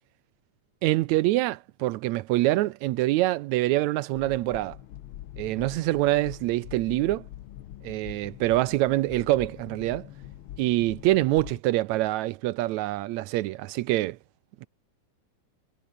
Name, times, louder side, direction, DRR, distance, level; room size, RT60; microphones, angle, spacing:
voice 1, 0.8-4.8 5.4-7.3 7.8-10.1 10.6-14.2, right 17 dB, 75° right, 1.8 m, -25 dB
sound 1, 4.1-11.6, left 13 dB, 85° left, 1.1 m, -44 dB
omnidirectional pair, 3.5 m